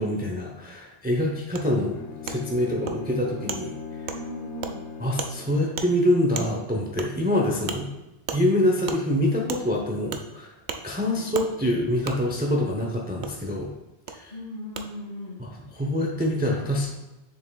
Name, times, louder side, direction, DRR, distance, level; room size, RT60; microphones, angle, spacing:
voice 1, 0.0-1.9 2.2-4.0 5.0-7.9 8.3-10.5 10.8-13.7 14.1-14.3 15.4-16.9, left 1 dB, 10° right, -2 dB, 0.6 m, -25 dB
Wood, 1.5-1.6 2.3-2.4 2.9-3.0 3.5-3.6 4.1-4.2 4.6-4.7 5.2-5.3 5.8-5.9 6.3-6.5 7.0-7.1 7.7-7.8 8.3-8.4 8.9-9.0 9.5-9.6 10.1-10.2 10.7-10.8 11.3-11.5 12.0-12.2 13.2-13.3 14.1-14.2 14.7-14.8, right 6 dB, 55° right, 0.6 m, -32 dB
Bowed string instrument, 1.9-6.0, left 6 dB, 90° left, 0.9 m, -39 dB
voice 2, 4.1-4.8 11.0-11.2 14.3-15.4, equal, 45° left, -2 dB, 1.6 m, -37 dB
6.8 x 6.6 x 2.3 m, 1.0 s
omnidirectional pair, 1.1 m